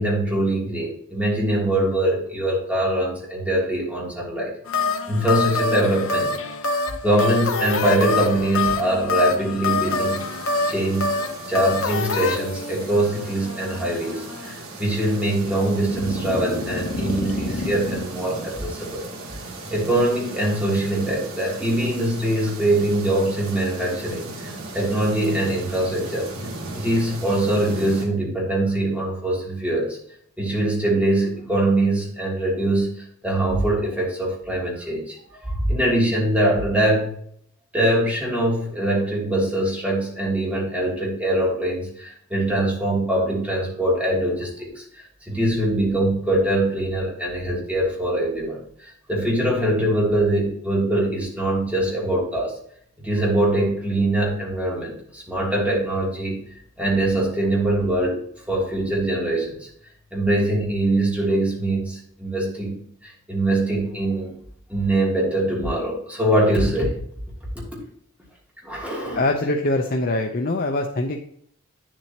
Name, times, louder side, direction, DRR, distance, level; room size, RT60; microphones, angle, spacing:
voice 1, 0.0-6.3 6.7-10.3 10.7-11.2 11.5-19.0 19.7-26.3 26.7-30.0 30.4-37.1 37.7-52.6 53.0-56.4 56.8-58.2 58.5-59.7 60.1-62.8 63.0-64.3 64.7-66.9 68.6-69.2, right 1 dB, 5° right, -4 dB, 2.8 m, -23 dB
sound 1, 4.7-14.6 15.7-18.0, left 3 dB, 70° left, 0.9 m, -26 dB
sound 2, 9.9-28.1, right 2 dB, 85° right, 2.7 m, -36 dB
voice 2, 69.1-71.2, left 2 dB, 45° left, 3 dB, 0.7 m, -23 dB
9.7 x 7.5 x 2.9 m, 0.64 s
head